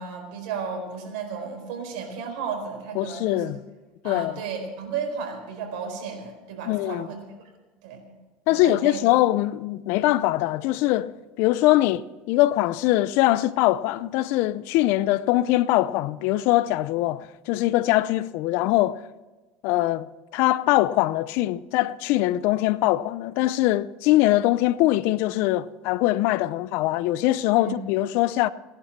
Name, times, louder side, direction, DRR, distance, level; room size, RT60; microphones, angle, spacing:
voice 1, 0.0-3.5 4.0-7.2 7.8-8.2 8.5-9.0 27.6-27.8, right 6 dB, 75° right, 4.5 m, -34 dB
voice 2, 3.0-3.6 4.0-4.4 6.7-7.1 8.5-19.0 19.6-20.1 20.3-28.5, left 16 dB, 65° left, 0.6 m, -22 dB
18.0 x 11.0 x 5.9 m
supercardioid pair, 110°, 4 cm